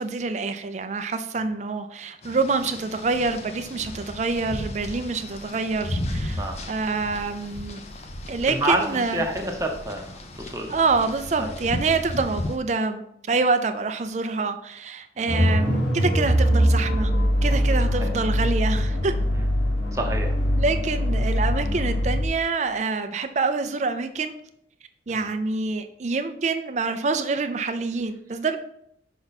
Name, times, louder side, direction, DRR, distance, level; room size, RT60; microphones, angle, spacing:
voice 1, 0.0-7.8 8.3-9.2 10.7-13.0 13.3-17.1 17.4-19.1 20.6-24.3 25.1-28.6, right 4 dB, 40° right, 8 dB, 0.4 m, -26 dB
sound 1, 2.2-12.6, left 1 dB, 35° left, 0.6 m, -35 dB
voice 2, 8.6-10.7 11.4-11.5 15.2-15.3 17.9-18.2 19.4-19.5 19.9-20.3 25.1-25.2, right 1 dB, 15° right, 2 dB, 0.8 m, -28 dB
sound 2, 15.3-22.3, equal, 90° left, 1.3 m, -22 dB
5.8 x 5.3 x 4.1 m, 0.72 s
head